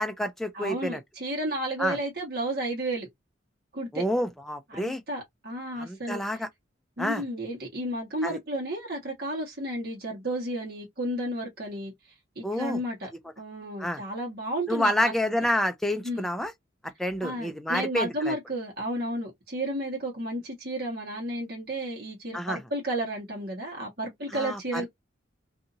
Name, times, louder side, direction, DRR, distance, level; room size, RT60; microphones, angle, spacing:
voice 1, 0.0-1.0 1.8-2.0 3.9-5.0 5.8-6.5 7.0-7.2 8.2-8.4 12.4-12.8 13.8-14.0 14.7-16.5 17.0-18.4 22.3-22.6 24.3-24.9, left 1 dB, ahead, 0.4 m, -28 dB
voice 2, 0.5-3.1 3.7-4.0 4.7-6.2 7.0-11.9 12.3-13.1 13.4-15.1 16.0-16.3 17.2-24.9, right 1 dB, 50° right, 1.3 m, -32 dB
2.7 x 2.6 x 2.6 m
head